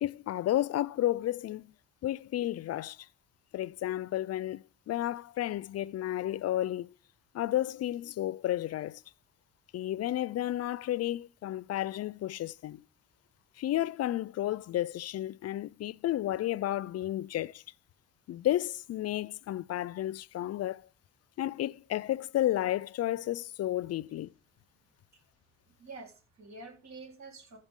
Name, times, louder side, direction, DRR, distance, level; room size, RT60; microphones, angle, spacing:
voice 1, 0.0-1.7 2.0-3.1 3.5-6.9 7.3-9.0 9.7-12.8 13.6-17.6 18.3-20.8 21.4-24.3, left 13 dB, 55° left, 0.5 m, -32 dB
voice 2, 25.7-27.6, right 3 dB, 60° right, 4.0 m, -48 dB
15.5 x 6.8 x 3.7 m
cardioid pair, 90°, 30 cm